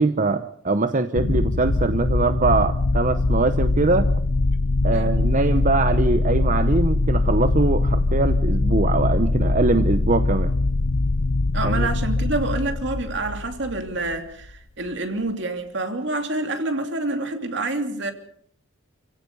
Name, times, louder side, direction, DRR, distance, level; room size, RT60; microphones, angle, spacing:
voice 1, 0.0-4.1 4.8-10.5 11.6-11.9, right 3 dB, 40° right, 0.8 m, -22 dB
sound 1, 1.1-14.1, left 2 dB, 90° left, 0.8 m, -22 dB
voice 2, 4.9-5.2 11.5-18.1, right 2 dB, 60° right, 2.9 m, -27 dB
29.5 x 16.5 x 5.4 m
head